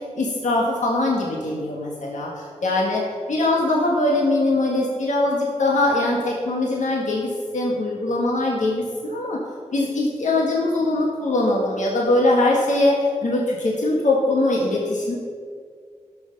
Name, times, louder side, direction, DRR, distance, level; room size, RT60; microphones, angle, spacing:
voice 1, 0.2-9.4 9.7-13.0 13.2-15.2, left 2 dB, 70° left, -2 dB, 1.6 m, -22 dB
11.0 x 6.2 x 6.5 m, 2.1 s
cardioid pair, 50°, 13 cm